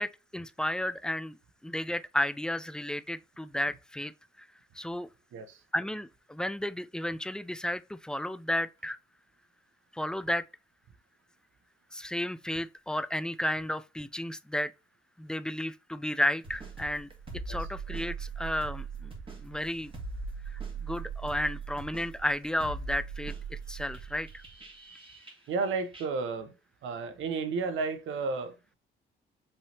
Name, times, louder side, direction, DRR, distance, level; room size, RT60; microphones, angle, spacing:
voice 1, 0.0-1.4 1.6-4.1 4.8-5.1 5.7-9.0 9.9-10.4 11.9-14.7 15.2-17.1 17.5-19.1 19.4-19.9 20.5-24.4, left 1 dB, 5° left, 0.3 m, -33 dB
sound 1, 16.4-25.6 25.9-26.1, right 5 dB, 25° right, 1.9 m, -40 dB
voice 2, 25.5-26.5 26.8-28.7, right 4 dB, 80° right, 0.9 m, -32 dB
5.5 x 3.3 x 2.8 m
cardioid pair, 90°, 20 cm